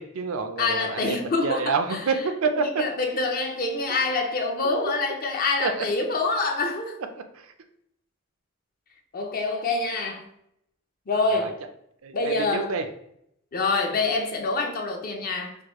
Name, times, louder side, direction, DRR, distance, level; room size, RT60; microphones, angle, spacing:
voice 1, 0.0-2.8 4.6-4.9 5.6-5.8 7.3-7.5 11.3-11.5 12.0-12.9, right 4 dB, 80° right, 7 dB, 0.5 m, -28 dB
voice 2, 0.6-2.0 2.5-7.0 9.1-10.3 11.1-11.6 12.1-12.7 13.5-15.5, left 3 dB, 45° left, 3 dB, 0.6 m, -26 dB
4.6 x 2.2 x 3.0 m, 0.74 s
head